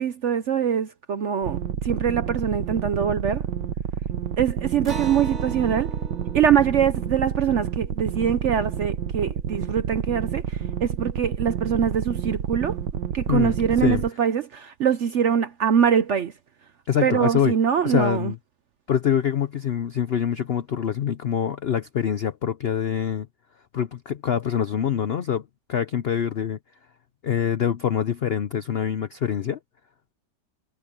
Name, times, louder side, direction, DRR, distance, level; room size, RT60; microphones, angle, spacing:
voice 1, 0.0-1.6 1.8-3.4 4.4-5.9 6.3-12.8 13.1-16.3 17.0-18.3, right 8 dB, 60° right, 0.8 m, -23 dB
sound 1, 1.4-14.1, right 9 dB, 90° right, 1.7 m, -29 dB
Acoustic guitar, 4.8-9.7, right 4 dB, 40° right, 4.3 m, -40 dB
voice 2, 13.3-14.1 16.9-17.5 17.8-18.4 18.9-23.3 23.7-26.6 27.2-29.6, left 9 dB, 65° left, 0.6 m, -25 dB
omnidirectional pair, 1.9 m